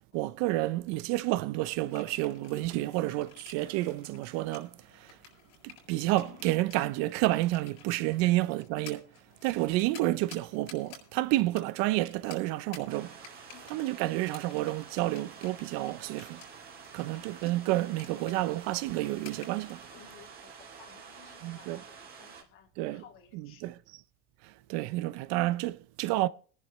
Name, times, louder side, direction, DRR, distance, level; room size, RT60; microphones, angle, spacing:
voice 1, 0.1-5.2 5.6-9.1 9.4-13.2 13.7-16.4 16.9-19.8 21.4-21.8 22.8-23.0 23.3-23.7 24.4-26.3, right 17 dB, 60° right, 0.6 m, -30 dB
sound 1, 1.8-19.8, left 6 dB, 80° left, 7.0 m, -54 dB
sound 2, 12.9-22.4, right 6 dB, 30° right, 2.3 m, -49 dB
voice 2, 13.5-13.9 16.9-17.4 19.9-23.8, left 9 dB, 40° left, 2.4 m, -57 dB
23.0 x 10.5 x 3.2 m
supercardioid pair, 140°, 31 cm